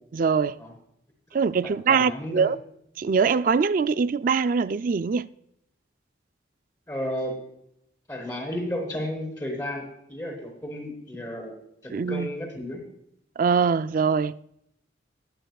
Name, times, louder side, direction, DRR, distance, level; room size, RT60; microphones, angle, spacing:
voice 1, 0.1-0.5 1.3-2.6 3.0-5.3 11.9-12.3 13.4-14.4, right 5 dB, 45° right, 0.4 m, -23 dB
voice 2, 1.6-2.5 6.9-7.4 8.1-11.5 11.8-12.8, left 1 dB, 20° left, 3.6 m, -33 dB
21.0 x 9.0 x 2.3 m
head